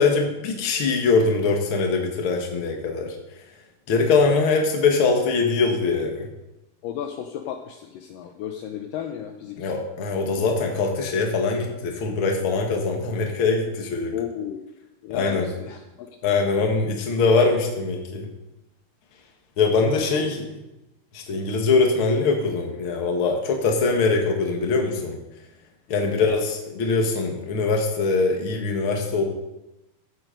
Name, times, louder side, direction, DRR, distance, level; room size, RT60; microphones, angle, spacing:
voice 1, 0.0-3.2 3.9-6.3 9.6-14.1 15.1-15.5 16.2-18.3 19.6-20.5 21.1-25.2 25.9-29.2, left 4 dB, 50° left, 2 dB, 1.7 m, -22 dB
voice 2, 6.8-9.7 14.1-14.7 15.0-15.8 16.2-16.4 19.9-20.4 25.9-26.2, left 9 dB, 85° left, 4 dB, 1.9 m, -34 dB
14.5 x 8.2 x 5.2 m, 0.95 s
omnidirectional pair, 4.8 m